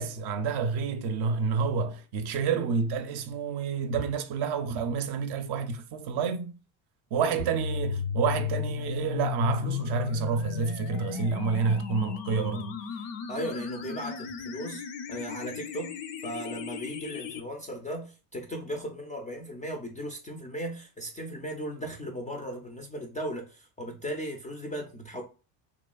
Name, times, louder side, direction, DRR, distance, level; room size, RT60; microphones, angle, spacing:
voice 1, 0.0-6.6 7.1-12.8, right 5 dB, 50° right, 0.5 m, -29 dB
sound 1, 7.4-17.4, left 6 dB, 60° left, 0.6 m, -35 dB
voice 2, 13.3-14.8 15.1-25.2, equal, 15° left, 0.3 m, -37 dB
3.0 x 2.3 x 2.2 m
supercardioid pair, 85°, 49 cm